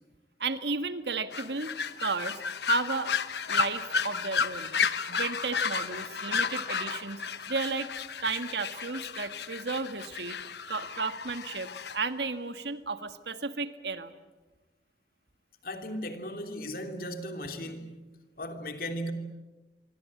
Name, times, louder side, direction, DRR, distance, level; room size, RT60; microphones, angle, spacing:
voice 1, 0.4-1.7 2.0-3.1 3.5-4.7 5.1-7.9 8.2-10.4 10.7-14.1, right 4 dB, 75° right, 1.7 m, -33 dB
sound 1, 1.3-12.0, left 6 dB, 70° left, 1.2 m, -32 dB
voice 2, 15.6-18.0 18.4-19.1, equal, 55° left, 3.1 m, -36 dB
27.0 x 24.5 x 8.6 m
head